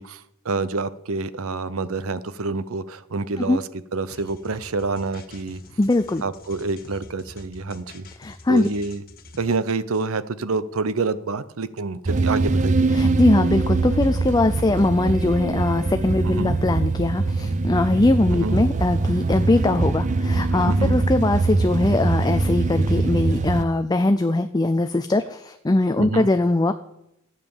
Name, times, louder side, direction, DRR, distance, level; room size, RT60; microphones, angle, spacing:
voice 1, 0.0-3.6 3.9-5.6 6.2-8.1 8.5-9.0 9.4-12.9 16.2-16.6 18.3-18.6 20.7-21.0 26.0-26.3, right 3 dB, 75° right, 16 dB, 0.7 m, -27 dB
sound 1, 4.1-9.6, left 2 dB, 45° left, 1.3 m, -45 dB
voice 2, 5.8-6.2 8.2-8.7 12.9-26.7, left 2 dB, 20° left, 9 dB, 0.5 m, -21 dB
sound 2, 12.0-23.6, right 3 dB, 35° right, 0.5 m, -22 dB
13.5 x 9.3 x 7.2 m, 0.83 s
head